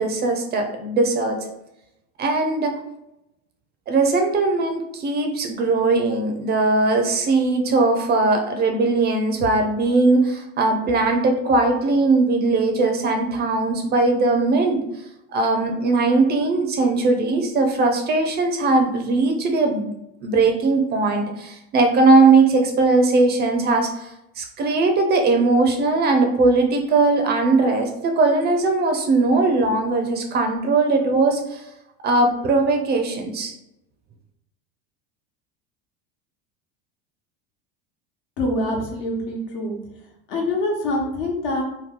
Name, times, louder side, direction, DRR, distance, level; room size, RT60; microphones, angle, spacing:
voice 1, 0.0-1.5 2.2-2.8 3.9-14.8 15.3-19.9 20.2-31.6 32.0-33.5, right 3 dB, 30° right, 4 dB, 0.4 m, -19 dB
voice 2, 38.4-39.7 40.3-41.6, left 1 dB, 75° left, 0 dB, 1.1 m, -25 dB
2.9 x 2.2 x 3.6 m, 0.85 s
supercardioid pair, 125°, 34 cm